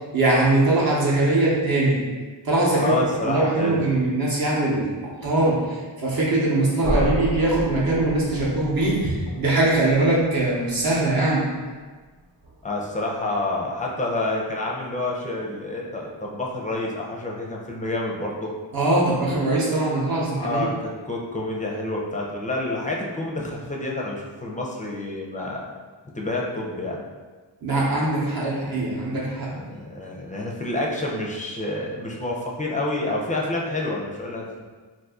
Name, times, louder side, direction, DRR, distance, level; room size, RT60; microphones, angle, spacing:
voice 1, 0.1-2.0 2.4-2.9 3.2-4.9 5.2-11.4 18.7-20.7 27.6-29.5, right 2 dB, 50° right, -6 dB, 0.8 m, -21 dB
voice 2, 2.7-3.9 12.6-18.5 20.0-25.7 26.1-27.0 29.5-34.6, left 2 dB, 20° left, -2 dB, 0.4 m, -28 dB
sound 1, 6.8-12.7, right 1 dB, 70° right, 1.0 m, -32 dB
2.6 x 2.5 x 3.5 m, 1.4 s
wide cardioid pair, 120°, 45 cm